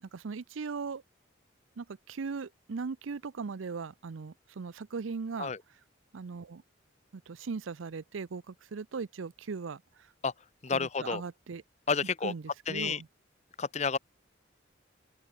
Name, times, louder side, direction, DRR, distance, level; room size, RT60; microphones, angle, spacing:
voice 1, 0.0-1.0 1.8-5.5 6.1-6.6 7.1-10.1 10.7-11.6 12.2-13.1, right 5 dB, 85° right, 0.5 m, -39 dB
voice 2, 10.6-11.2 11.9-12.3 12.7-13.0 13.6-14.0, left 5 dB, 35° left, 0.5 m, -30 dB
open air
head